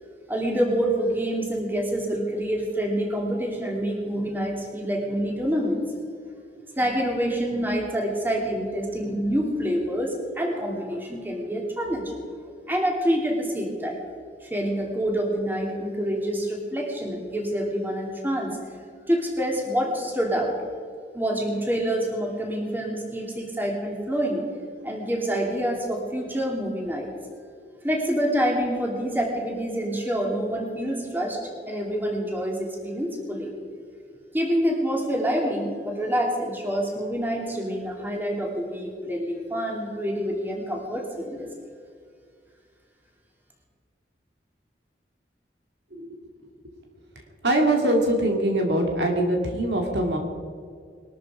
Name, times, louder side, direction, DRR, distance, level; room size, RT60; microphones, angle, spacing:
voice 1, 0.3-5.8 6.8-12.1 12.4-14.0 14.4-18.6 19.1-20.5 21.1-24.4 24.8-27.1 27.8-31.4 31.7-33.5 34.3-41.5, equal, 10° right, -1 dB, 2.9 m, -27 dB
voice 2, 47.4-50.2, right 1 dB, 80° right, 2 dB, 2.5 m, -23 dB
21.0 x 13.0 x 5.0 m, 2.2 s
head